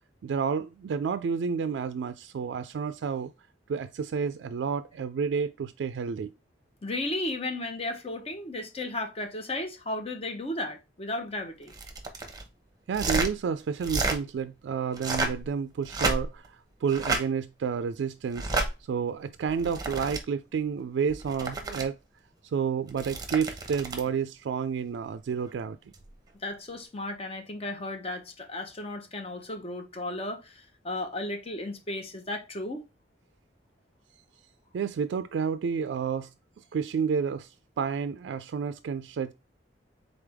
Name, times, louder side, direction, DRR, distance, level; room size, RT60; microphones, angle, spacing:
voice 1, 0.2-3.3 3.7-6.3 12.9-18.5 18.8-22.0 22.4-25.8 34.7-36.3 36.7-39.3, right 6 dB, 75° right, 0.3 m, -30 dB
voice 2, 6.8-11.7 26.4-32.9, left 2 dB, 35° left, 0.9 m, -34 dB
sound 1, 11.7-12.4 12.9-13.3 13.8-14.2 14.9-15.4 15.9-16.5 16.9-17.2 18.3-18.7 19.5-20.2 21.1-21.8 22.9-24.1 25.9-26.1, right 3 dB, 20° right, 0.8 m, -30 dB
3.9 x 3.4 x 3.4 m
head